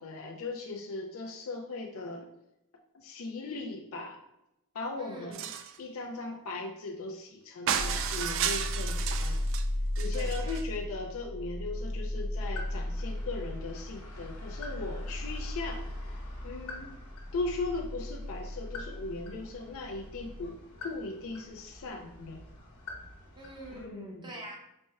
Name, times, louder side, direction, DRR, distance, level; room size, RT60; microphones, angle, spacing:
voice 1, 0.0-2.3 2.9-4.2 4.7-5.4 5.8-9.4 10.0-15.8 16.1-16.2 16.4-16.9 17.3-22.4 23.7-24.3, left 3 dB, 65° left, 2 dB, 0.4 m, -38 dB
voice 2, 5.0-5.4 10.1-10.5 23.3-24.6, right 1 dB, 20° right, -1 dB, 0.7 m, -44 dB
sound 1, 5.3-5.8 7.7-9.6 9.9-10.6, right 8 dB, 60° right, 0.3 m, -33 dB
sound 2, 7.7-20.5, left 1 dB, 50° left, 1.0 m, -36 dB
sound 3, 12.4-23.9, left 2 dB, 80° left, 1.0 m, -48 dB
4.3 x 2.1 x 3.4 m, 0.87 s
head